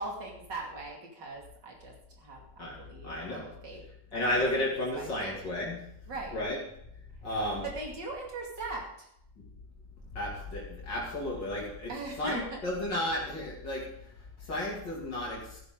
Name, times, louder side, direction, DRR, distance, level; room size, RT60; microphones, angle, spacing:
voice 1, 0.0-1.9 2.2-3.8 4.3-5.4 6.1-6.4 7.6-8.9 11.9-12.6, right 2 dB, 75° right, -1 dB, 3.2 m, -40 dB
voice 2, 3.0-3.4 4.1-5.8 6.3-6.6 7.2-7.6 10.2-11.9 12.2-13.8 14.5-15.4, left 1 dB, 75° left, -4 dB, 3.5 m, -32 dB
14.0 x 11.5 x 3.9 m, 0.73 s
omnidirectional pair, 1.9 m